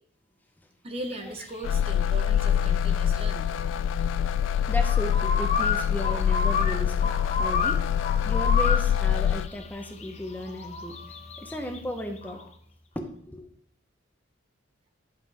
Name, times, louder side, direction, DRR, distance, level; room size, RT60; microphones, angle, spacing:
voice 1, 0.8-3.5, right 1 dB, 30° right, 5 dB, 0.8 m, -38 dB
sound 1, 1.0-12.5, left 4 dB, 35° left, 0.8 m, -32 dB
sound 2, 1.6-9.5, left 9 dB, 80° left, 0.3 m, -25 dB
voice 2, 4.7-7.8 8.2-11.0 11.4-12.4 12.9-13.5, equal, 10° left, 4 dB, 0.8 m, -35 dB
11.0 x 5.4 x 3.4 m, 0.66 s
head